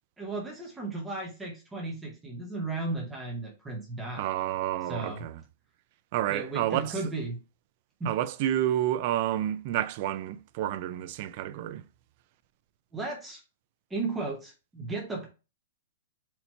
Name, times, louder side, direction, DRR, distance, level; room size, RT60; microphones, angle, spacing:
voice 1, 0.2-4.3 4.8-5.3 6.3-7.4 8.0-8.1 12.9-13.4 13.9-15.3, right 3 dB, 5° right, 0.7 m, -35 dB
voice 2, 4.2-5.3 6.1-6.9 8.1-11.8, right 12 dB, 35° right, 0.3 m, -29 dB
4.3 x 2.8 x 4.4 m
supercardioid pair, 175°, 0 cm